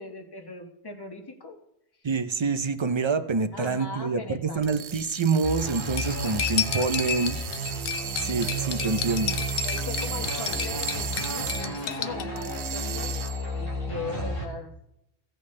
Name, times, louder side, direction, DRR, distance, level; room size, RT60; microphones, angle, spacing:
voice 1, 0.0-1.6 3.5-4.9 9.6-13.1 13.6-14.7, left 3 dB, 25° left, 4 dB, 1.0 m, -39 dB
voice 2, 2.0-7.4 8.2-9.5 14.1-14.3, right 4 dB, 40° right, 10 dB, 0.4 m, -27 dB
sound 1, 4.6-12.0 12.4-13.5, right 10 dB, 85° right, 0.9 m, -36 dB
sound 2, 5.4-14.4, equal, 60° left, 2.8 m, -33 dB
Cutlery silverware, 6.0-12.2, left 8 dB, 85° left, 1.0 m, -32 dB
16.0 x 7.8 x 3.2 m, 0.82 s
omnidirectional pair, 1.1 m